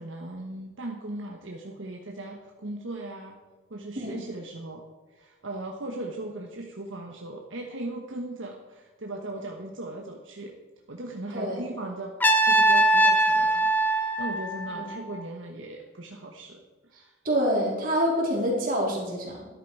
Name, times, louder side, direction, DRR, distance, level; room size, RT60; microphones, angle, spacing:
voice 1, 0.0-3.4 3.7-10.5 10.9-12.1 12.4-17.1, right 2 dB, 75° right, 1 dB, 1.3 m, -38 dB
Trumpet, 12.2-15.2, right 1 dB, 10° left, 0.7 m, -22 dB
voice 2, 17.2-19.5, equal, 45° right, -2 dB, 3.8 m, -26 dB
13.0 x 11.5 x 4.7 m, 1.2 s
head